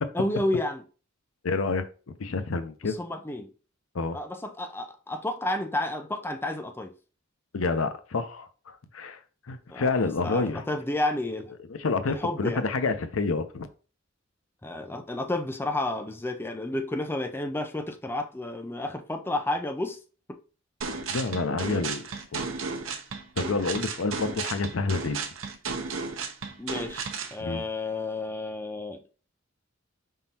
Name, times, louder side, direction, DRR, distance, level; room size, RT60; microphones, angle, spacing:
voice 1, 0.1-0.8 2.8-3.5 4.1-6.9 9.7-9.9 10.2-11.5 12.1-12.6 14.6-20.0 20.3-20.4 21.7-21.9 26.6-29.1, left 2 dB, 10° left, 0.5 m, -31 dB
voice 2, 1.4-1.8 2.2-3.0 3.9-4.2 7.5-9.2 9.5-10.6 11.8-13.7 21.1-22.1 22.3-22.4 23.4-25.3 27.4-27.6, left 3 dB, 80° left, 0.6 m, -28 dB
sound 1, 20.8-27.4, right 4 dB, 75° right, 0.8 m, -34 dB
5.1 x 3.7 x 2.8 m
head